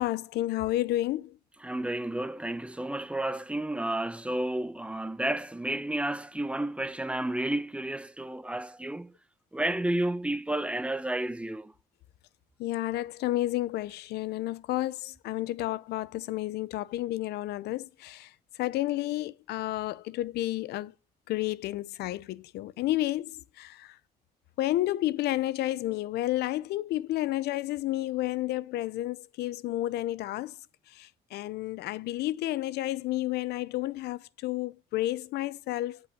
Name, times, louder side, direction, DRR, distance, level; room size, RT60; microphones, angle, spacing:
voice 1, 0.0-1.3 12.6-18.3 18.6-20.9 21.3-23.9 24.6-30.6 31.0-36.0, left 15 dB, 80° left, 0.6 m, -31 dB
voice 2, 1.6-9.1 9.5-11.7, right 1 dB, 5° right, 0.9 m, -31 dB
9.7 x 5.5 x 8.4 m
cardioid pair, 80°, 17 cm